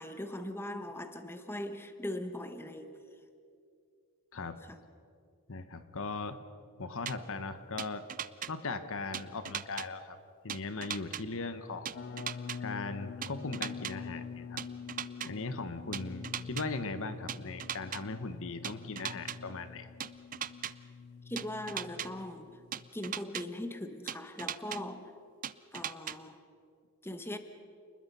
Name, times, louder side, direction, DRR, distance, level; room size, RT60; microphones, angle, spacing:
voice 1, 0.0-3.0 4.7-4.8 15.2-15.3 21.3-22.5 22.9-25.1 25.7-26.4 27.0-27.4, left 1 dB, 10° left, 8 dB, 1.2 m, -40 dB
voice 2, 4.3-4.6 5.5-6.4 6.8-8.0 8.5-10.2 10.4-12.0 12.6-14.6 15.3-19.9, left 3 dB, 65° left, 10 dB, 1.2 m, -39 dB
sound 1, 7.1-7.2 7.8-8.5 9.1-9.9 10.5-11.2 11.9-12.6 13.2-13.9 14.6-15.3 15.9-16.6 17.3-18.0 18.6-19.4 20.0-20.7 21.4-22.1 22.7-23.4 24.1-24.8 25.4-26.2, right 9 dB, 40° right, 0.6 m, -37 dB
sound 2, 11.9-22.9, left 5 dB, 50° left, 0.4 m, -45 dB
29.5 x 20.5 x 5.6 m, 2.4 s
head